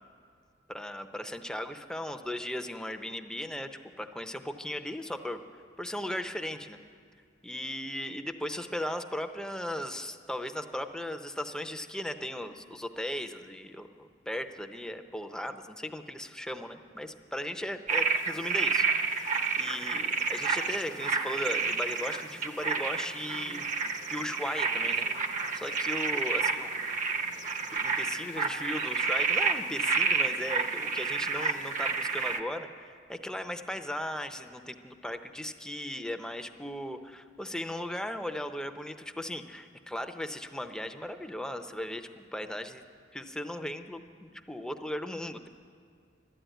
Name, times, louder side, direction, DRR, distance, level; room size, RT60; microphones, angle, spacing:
voice 1, 0.7-3.7 4.0-5.4 5.8-6.8 7.4-23.7 24.1-25.1 25.5-26.9 27.7-42.8 43.1-45.5, left 1 dB, 5° left, 7 dB, 0.6 m, -37 dB
sound 1, 17.9-32.4, right 5 dB, 45° right, 0.8 m, -30 dB
12.5 x 12.5 x 9.1 m, 2.2 s
head